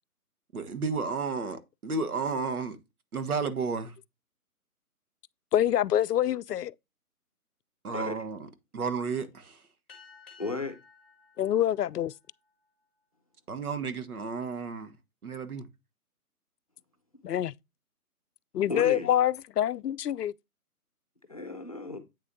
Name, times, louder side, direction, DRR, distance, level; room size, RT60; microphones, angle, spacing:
voice 1, 0.5-2.8 3.1-3.9 7.8-8.4 8.7-9.6 13.5-15.0 15.2-15.7, right 4 dB, 70° right, 1.5 m, -32 dB
voice 2, 5.5-6.7 11.4-12.1 17.2-17.5 18.5-20.3, left 11 dB, 85° left, 0.5 m, -26 dB
voice 3, 7.9-8.2 10.4-10.8 18.7-19.1 21.3-22.0, left 3 dB, 25° left, 0.7 m, -34 dB
sound 1, 9.9-12.8, left 5 dB, 5° left, 1.1 m, -56 dB
8.6 x 6.6 x 2.7 m
hypercardioid pair, 170°, 46 cm